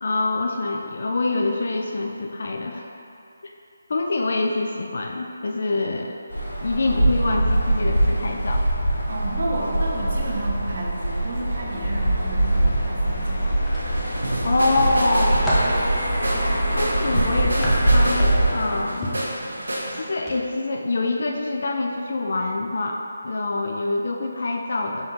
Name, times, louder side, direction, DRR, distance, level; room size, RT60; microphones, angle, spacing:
voice 1, 0.0-2.9 3.9-6.2 6.6-8.7 14.4-15.4 16.8-19.1 19.9-25.1, left 2 dB, 60° left, 1 dB, 0.3 m, -25 dB
sound 1, 6.3-18.8, right 1 dB, 85° left, 1.4 m, -23 dB
voice 2, 9.1-13.5, right 1 dB, 55° right, -5 dB, 1.0 m, -31 dB
sound 2, 13.6-14.4 14.9-15.8 17.2-18.6 19.0-19.3 20.2-20.4 20.7-20.9, equal, 10° left, 0.7 m, -30 dB
sound 3, 13.8-20.0, right 1 dB, 80° right, 1.1 m, -30 dB
5.4 x 3.5 x 2.7 m, 2.7 s
figure-of-eight pair, 160°, 0 cm